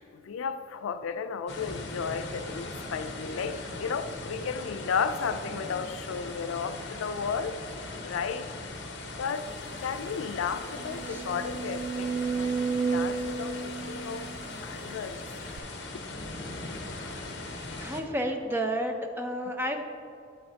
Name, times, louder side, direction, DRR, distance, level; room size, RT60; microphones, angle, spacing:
voice 1, 0.1-7.6 8.0-8.5 9.2-9.5 9.8-14.3 14.6-15.2, left 6 dB, 90° left, 0.4 m, -34 dB
sound 1, 1.5-18.0, left 2 dB, 55° left, 0.9 m, -39 dB
sound 2, 9.5-9.6 10.0-10.1 10.7-14.9 15.6-15.7, right 5 dB, 75° right, 0.4 m, -32 dB
voice 2, 17.8-19.8, equal, 10° right, 0.5 m, -31 dB
8.6 x 7.7 x 2.8 m
head